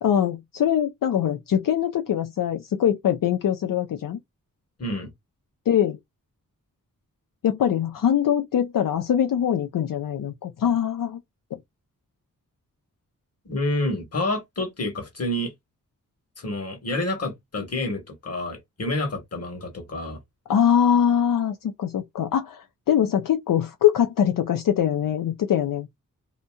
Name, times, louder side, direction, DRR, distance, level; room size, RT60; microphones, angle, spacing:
voice 1, 0.0-4.2 5.7-6.0 7.4-11.2 11.5-11.6 20.5-25.9, left 9 dB, 75° left, 0.5 m, -23 dB
voice 2, 13.4-15.5 16.4-20.2, left 1 dB, 50° left, 1.4 m, -28 dB
2.8 x 2.7 x 2.2 m
wide cardioid pair, 80°, 33 cm